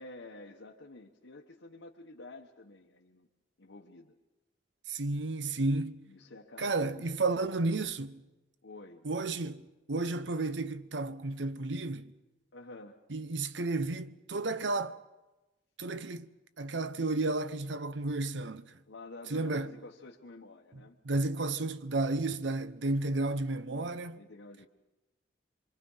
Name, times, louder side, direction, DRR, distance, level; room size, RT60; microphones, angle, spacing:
voice 1, 0.0-3.3 3.6-4.1 6.1-7.1 8.6-9.1 12.5-13.0 18.8-21.0 24.2-24.7, left 2 dB, 85° left, 1.3 m, -50 dB
voice 2, 4.9-6.0 6.6-8.2 9.0-12.1 13.1-15.0 15.8-16.3 16.6-18.7 19.3-19.7 21.0-24.2, right 2 dB, 70° right, 0.8 m, -32 dB
26.5 x 24.0 x 5.6 m
head